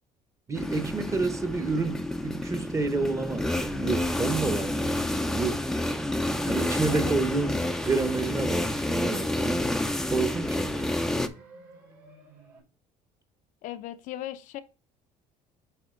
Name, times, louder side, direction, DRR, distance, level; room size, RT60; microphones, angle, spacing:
voice 1, 0.5-5.6 6.5-7.6 7.8-9.6 10.1-10.9, right 3 dB, 20° right, 1.0 m, -29 dB
sound 1, 0.6-11.3, left 1 dB, 5° left, 0.5 m, -29 dB
sound 2, 5.5-12.6, right 4 dB, 90° right, 3.5 m, -53 dB
voice 2, 6.9-7.7 13.6-14.6, left 13 dB, 65° left, 0.7 m, -39 dB
8.8 x 3.0 x 3.7 m
cardioid pair, 125°, 14 cm